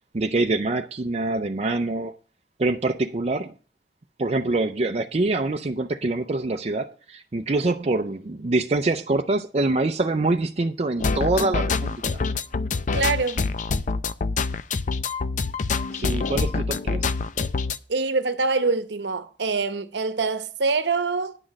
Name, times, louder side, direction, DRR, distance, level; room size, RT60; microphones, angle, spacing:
voice 1, 0.1-2.1 2.6-3.5 4.2-12.0 15.9-17.1, right 2 dB, 35° right, 0.5 m, -25 dB
sound 1, 11.0-17.8, left 4 dB, 45° left, 0.5 m, -26 dB
voice 2, 12.9-13.4 17.9-21.4, right 4 dB, 75° right, 0.9 m, -24 dB
9.9 x 6.1 x 6.4 m
head